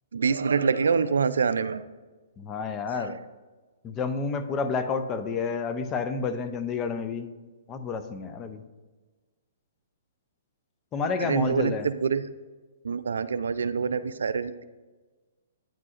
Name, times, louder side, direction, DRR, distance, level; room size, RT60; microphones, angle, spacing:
voice 1, 0.1-1.8 2.9-3.1 11.2-12.2 12.8-14.6, right 5 dB, 85° right, 14 dB, 0.3 m, -26 dB
voice 2, 2.4-3.2 3.8-7.3 7.7-8.6 10.9-11.9, left 5 dB, 20° left, 9 dB, 0.4 m, -30 dB
9.1 x 4.8 x 2.4 m, 1.3 s
hypercardioid pair, 140°, 0 cm